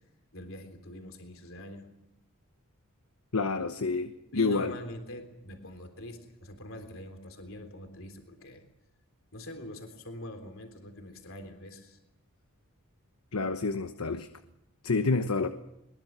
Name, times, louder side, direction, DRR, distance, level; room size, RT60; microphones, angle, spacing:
voice 1, 0.3-1.9 4.3-8.6 9.3-12.0, equal, 65° left, 3.6 m, -44 dB
voice 2, 3.3-4.7 13.3-14.3 14.8-15.5, left 3 dB, 85° left, 1.1 m, -28 dB
23.0 x 21.5 x 7.5 m
head